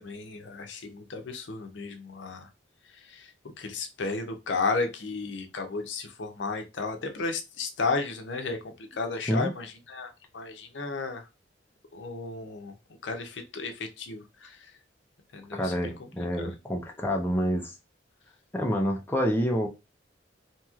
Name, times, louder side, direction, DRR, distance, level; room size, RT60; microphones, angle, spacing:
voice 1, 0.0-2.4 3.6-10.1 10.3-11.2 11.9-12.7 13.0-14.5 15.3-15.7 16.4-16.5, left 4 dB, 70° left, 0.6 m, -33 dB
voice 2, 15.5-17.7 18.5-19.7, equal, 10° left, 0.4 m, -27 dB
2.9 x 2.8 x 2.3 m
head